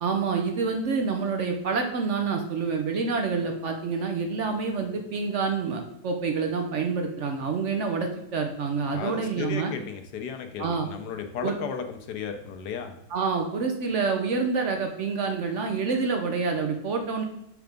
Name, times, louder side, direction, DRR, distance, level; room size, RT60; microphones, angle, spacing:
voice 1, 0.0-9.7 10.6-10.9 11.4-11.6 13.1-17.2, right 4 dB, 60° right, 4 dB, 0.9 m, -27 dB
voice 2, 8.9-13.0, left 7 dB, 90° left, 6 dB, 1.3 m, -34 dB
6.2 x 3.4 x 5.1 m, 0.80 s
omnidirectional pair, 1.7 m